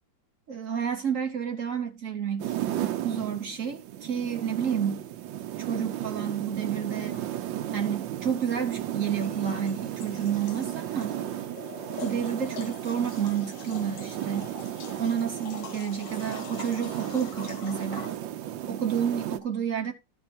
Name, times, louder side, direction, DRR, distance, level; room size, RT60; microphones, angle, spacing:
voice 1, 0.5-2.6 3.0-5.0 5.6-7.2 7.7-11.1 12.0-14.5 15.0-18.1 18.7-19.9, right 8 dB, 50° right, 1.2 m, -30 dB
sound 1, 2.4-19.4, right 12 dB, 85° right, 1.4 m, -35 dB
sound 2, 7.1-7.3 9.0-18.2, left 8 dB, 75° left, 1.5 m, -45 dB
12.5 x 4.5 x 4.3 m
omnidirectional pair, 2.0 m